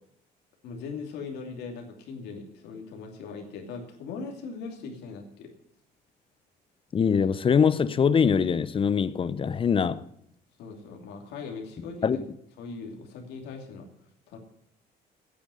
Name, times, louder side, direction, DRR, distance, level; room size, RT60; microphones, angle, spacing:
voice 1, 0.6-5.5 10.6-12.2 12.6-13.9 14.3-14.4, left 4 dB, 80° left, 2.7 m, -39 dB
voice 2, 6.9-10.0 12.0-12.2, left 6 dB, 30° left, 0.6 m, -23 dB
9.3 x 8.7 x 7.7 m
cardioid pair, 110°, 17 cm